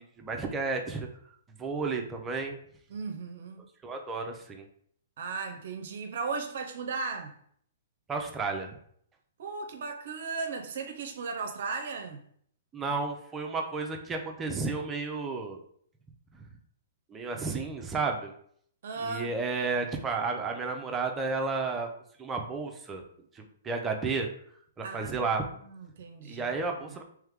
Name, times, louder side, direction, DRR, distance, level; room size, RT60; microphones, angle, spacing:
voice 1, 0.2-1.1 1.6-2.6 3.8-4.6 8.1-8.7 12.7-15.6 16.3-16.5 17.1-18.3 19.0-21.9 22.2-23.0 23.3-24.3 24.8-25.4 26.2-27.0, right 4 dB, 15° right, 3 dB, 0.6 m, -32 dB
voice 2, 2.9-3.7 5.2-7.4 9.4-12.2 18.8-19.3 24.8-27.0, right 4 dB, 65° right, 5 dB, 0.5 m, -36 dB
3.4 x 3.2 x 3.5 m, 0.63 s
hypercardioid pair, 140°, 0 cm